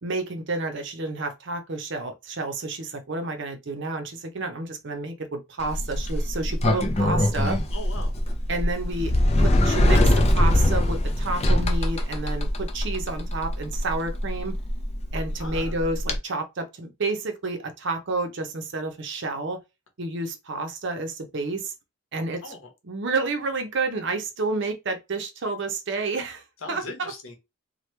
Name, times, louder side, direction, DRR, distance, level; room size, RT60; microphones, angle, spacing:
voice 1, 0.0-7.6 8.5-14.5 15.1-19.6 20.0-21.7 22.1-22.4 22.9-26.4 26.7-27.1, right 3 dB, 60° right, 0.6 m, -30 dB
Sliding door, 5.6-16.2, left 1 dB, 30° left, 0.5 m, -23 dB
voice 2, 7.7-8.2 15.4-15.8 22.4-22.7 26.6-27.3, left 2 dB, 70° left, 0.9 m, -39 dB
2.9 x 2.2 x 3.2 m
head